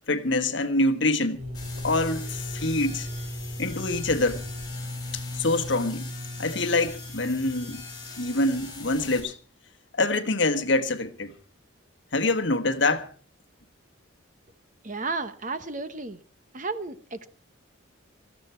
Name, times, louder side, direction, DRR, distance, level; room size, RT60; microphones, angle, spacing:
voice 1, 0.1-1.4 1.8-3.1 3.6-4.4 5.1-6.1 6.4-7.8 8.2-9.4 10.0-11.4 12.1-13.1, left 2 dB, 60° left, 1.4 m, -25 dB
sound 1, 1.3-9.1, left 1 dB, 70° right, 2.9 m, -37 dB
sound 2, 1.5-9.2, left 4 dB, 20° left, 6.7 m, -42 dB
voice 2, 14.8-16.2 16.5-17.3, right 3 dB, 35° right, 1.1 m, -33 dB
18.5 x 14.5 x 4.5 m
head